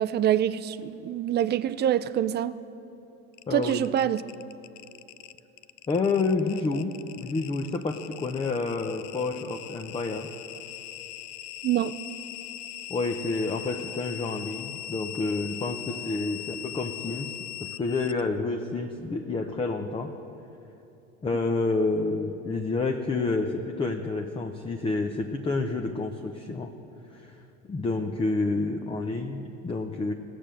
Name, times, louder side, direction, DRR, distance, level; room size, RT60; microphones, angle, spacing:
voice 1, 0.0-2.6 3.5-4.2 11.6-12.0, right 11 dB, 30° right, 15 dB, 0.4 m, -25 dB
sound 1, 3.3-18.2, left 13 dB, 75° left, 0.6 m, -40 dB
voice 2, 3.5-3.8 5.9-10.3 12.9-17.3 17.6-20.1 21.2-26.7 27.1-27.4 27.7-30.1, left 3 dB, 15° left, 5 dB, 0.6 m, -29 dB
16.5 x 6.9 x 7.5 m, 2.9 s
supercardioid pair, 105°, 36 cm